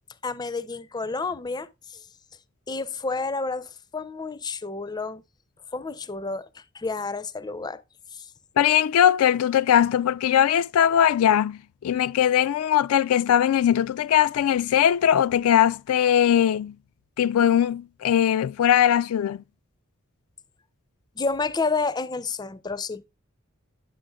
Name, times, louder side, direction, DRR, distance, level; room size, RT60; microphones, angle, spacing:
voice 1, 0.2-2.0 2.7-5.2 5.7-6.5 6.7-7.8 8.1-8.3 21.2-23.0, left 4 dB, 20° left, 0.4 m, -30 dB
voice 2, 8.6-16.7 17.2-19.4, left 10 dB, 85° left, 0.3 m, -20 dB
9.9 x 7.5 x 2.3 m
head